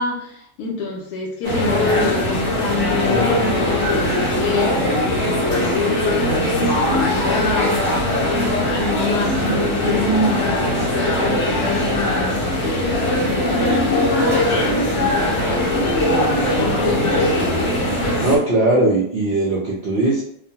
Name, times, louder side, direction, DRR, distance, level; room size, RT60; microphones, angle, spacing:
voice 1, 0.0-16.0 16.4-17.7, left 3 dB, 75° left, -2 dB, 1.0 m, -26 dB
sound 1, 1.4-18.4, left 1 dB, 50° left, 1.1 m, -20 dB
voice 2, 18.2-20.2, right 2 dB, 70° right, -5 dB, 0.5 m, -19 dB
2.9 x 2.1 x 2.7 m, 0.69 s
omnidirectional pair, 1.7 m